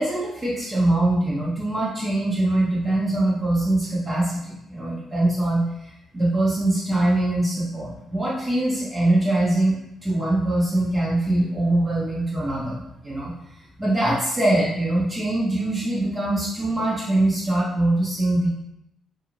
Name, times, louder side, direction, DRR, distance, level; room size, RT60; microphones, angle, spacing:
voice 1, 0.0-9.7 10.0-13.3 13.8-18.5, right 1 dB, 20° right, -7 dB, 0.7 m, -23 dB
2.4 x 2.3 x 3.0 m, 0.82 s
cardioid pair, 90°, 0 cm